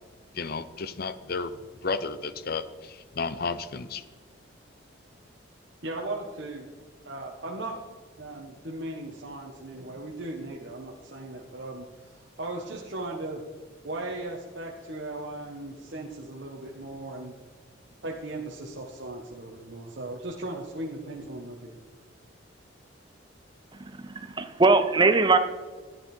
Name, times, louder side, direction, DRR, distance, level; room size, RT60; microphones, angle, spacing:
voice 1, 0.3-4.0, left 4 dB, 50° left, 13 dB, 0.7 m, -33 dB
voice 2, 5.8-6.7 7.0-13.4 13.8-17.3 18.0-21.7, right 2 dB, 60° right, -2 dB, 1.3 m, -37 dB
voice 3, 23.7-25.4, right 3 dB, 25° right, 9 dB, 0.5 m, -21 dB
14.0 x 10.0 x 4.4 m, 1.5 s
head